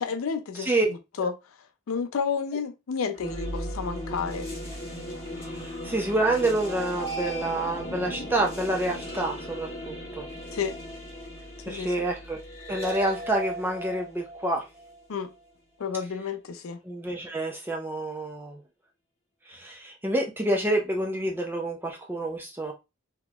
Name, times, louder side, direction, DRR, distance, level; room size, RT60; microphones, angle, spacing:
voice 1, 0.0-1.3 1.9-4.5 10.5-10.8 11.7-12.1 15.1-15.3 15.8-16.8, left 6 dB, 75° left, 0.4 m, -31 dB
sound 1, 3.1-15.3, equal, 25° left, 1.4 m, -36 dB
voice 2, 5.4-10.3 11.7-12.4 12.7-14.7 16.8-18.6 19.5-22.7, right 1 dB, 10° right, 0.4 m, -28 dB
3.8 x 2.9 x 2.3 m
head